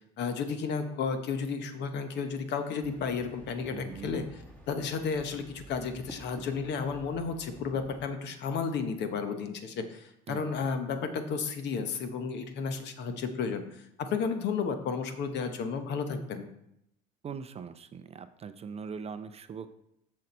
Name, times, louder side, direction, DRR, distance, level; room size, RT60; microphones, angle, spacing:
voice 1, 0.0-16.5, left 5 dB, 55° left, 8 dB, 1.0 m, -33 dB
sound 1, 2.8-8.1, equal, 5° left, 1.9 m, -51 dB
voice 2, 3.7-4.2 10.3-10.4 17.2-19.7, right 6 dB, 30° right, 11 dB, 0.5 m, -41 dB
6.4 x 6.4 x 4.3 m, 0.77 s
supercardioid pair, 85°, 21 cm